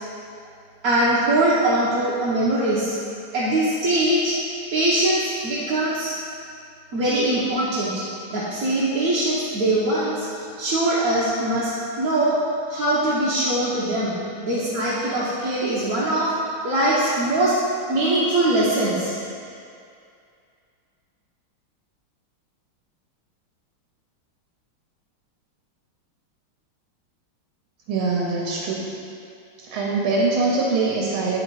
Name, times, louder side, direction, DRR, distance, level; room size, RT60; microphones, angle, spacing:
voice 1, 0.8-3.0 3.3-4.4 4.7-6.1 6.9-8.0 8.3-12.4 12.7-14.2 14.4-16.3 16.6-17.6 17.9-19.2, right 1 dB, 55° right, -9 dB, 1.1 m, -22 dB
voice 2, 27.9-28.9 29.7-31.4, right 3 dB, 80° right, -3 dB, 1.6 m, -23 dB
8.5 x 3.9 x 4.6 m, 2.4 s
omnidirectional pair, 2.3 m